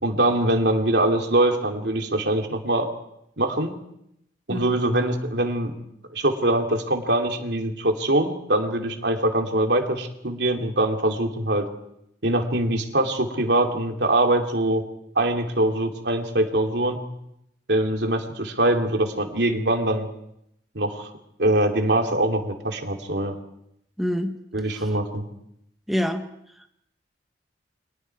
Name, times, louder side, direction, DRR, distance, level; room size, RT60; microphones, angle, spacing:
voice 1, 0.0-2.9 3.4-3.8 4.5-5.7 6.1-11.7 12.2-14.8 15.1-17.0 17.7-20.1 20.7-21.1 21.4-23.4 24.5-25.2, right 1 dB, 70° right, 3 dB, 2.8 m, -23 dB
voice 2, 24.0-24.4 24.7-24.9 25.9-26.2, equal, ahead, 5 dB, 1.1 m, -26 dB
30.0 x 23.5 x 4.7 m, 0.79 s
head